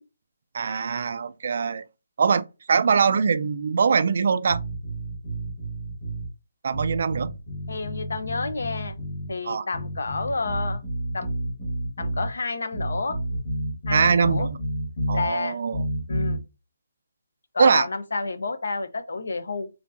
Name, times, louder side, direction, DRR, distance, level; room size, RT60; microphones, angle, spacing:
voice 1, 0.5-1.8 2.2-4.6 6.6-7.3 9.4-9.7 13.9-14.6 15.1-15.8 17.6-17.9, right 5 dB, 40° right, 0.3 m, -22 dB
sound 1, 4.5-6.3 6.7-9.3 9.7-12.3 12.7-15.3 15.7-16.4, right 1 dB, 35° left, 1.8 m, -30 dB
voice 2, 7.7-9.0 9.3-10.8 11.1-11.3 12.0-13.2 13.9-14.5 15.1-15.6 16.1-16.4 17.5-19.7, left 3 dB, 70° left, 0.8 m, -30 dB
4.3 x 2.7 x 2.6 m
hypercardioid pair, 175°, 0 cm